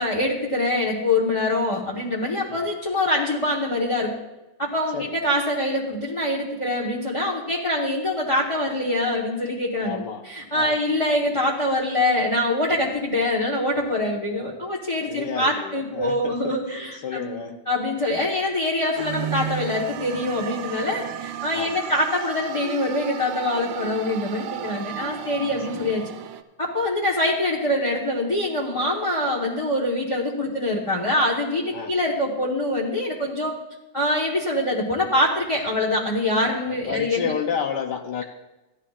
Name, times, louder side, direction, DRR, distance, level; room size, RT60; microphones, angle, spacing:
voice 1, 0.0-4.1 4.6-17.4 17.7-26.0 26.6-33.5 33.9-37.3, left 1 dB, 20° left, -3 dB, 0.9 m, -24 dB
voice 2, 9.8-10.2 10.5-10.8 15.1-17.6 21.5-22.0 25.7-25.8 31.7-31.9 36.7-38.2, left 7 dB, 70° left, 6 dB, 1.1 m, -31 dB
sound 1, 19.0-26.4, right 10 dB, 85° right, 1.5 m, -34 dB
15.5 x 11.0 x 2.4 m, 1.0 s
omnidirectional pair, 2.4 m